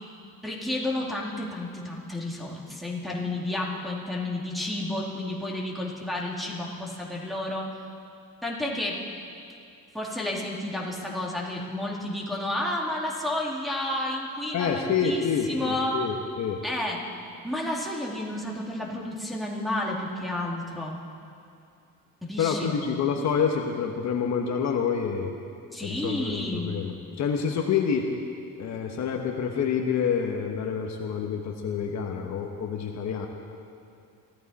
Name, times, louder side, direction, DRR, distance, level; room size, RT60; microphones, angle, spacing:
voice 1, 0.4-7.7 8.4-9.0 9.9-16.0 16.6-17.0 17.4-20.9 22.2-22.7 25.7-26.8, left 1 dB, ahead, -4 dB, 2.4 m, -31 dB
voice 2, 14.5-16.6 22.4-25.3 25.8-28.1 28.6-33.3, left 6 dB, 55° left, 2 dB, 1.3 m, -27 dB
23.5 x 14.0 x 4.2 m, 2.5 s
cardioid pair, 135°, 33 cm